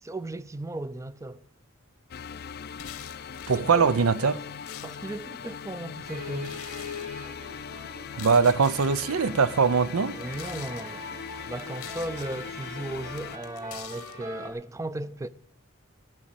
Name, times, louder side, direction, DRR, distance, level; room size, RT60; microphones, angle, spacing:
voice 1, 0.0-1.4 3.5-3.9 4.3-4.4 4.8-7.0 10.1-11.0 11.5-15.3, right 1 dB, 15° right, 0.4 m, -36 dB
sound 1, 2.1-13.4, left 7 dB, 45° left, 0.4 m, -40 dB
sound 2, 2.7-3.6 4.2-5.3 6.4-7.1 8.0-9.1 10.1-10.8 11.6-12.4 13.2-14.2, left 10 dB, 90° left, 1.1 m, -45 dB
voice 2, 3.5-4.4 8.2-10.2, right 5 dB, 80° right, 0.6 m, -22 dB
sound 3, 6.1-14.5, left 2 dB, 40° right, 2.9 m, -42 dB
14.0 x 6.3 x 8.9 m
head